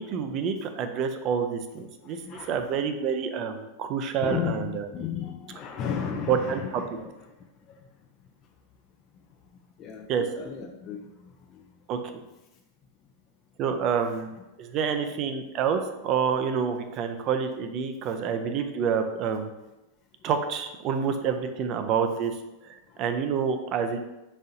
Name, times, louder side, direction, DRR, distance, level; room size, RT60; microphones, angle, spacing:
voice 1, 0.0-4.8 6.3-6.6 10.1-10.2 11.9-12.0 13.6-14.3 14.6-19.5 20.2-22.4 22.6-24.0, right 7 dB, 45° right, 7 dB, 0.5 m, -28 dB
voice 2, 2.0-2.7 4.2-7.3 7.7-7.8 9.8-11.7 14.1-14.2 22.9-23.1 23.4-23.5, left 8 dB, 40° left, 2 dB, 0.4 m, -35 dB
4.1 x 3.7 x 2.7 m, 0.99 s
hypercardioid pair, 110°, 0 cm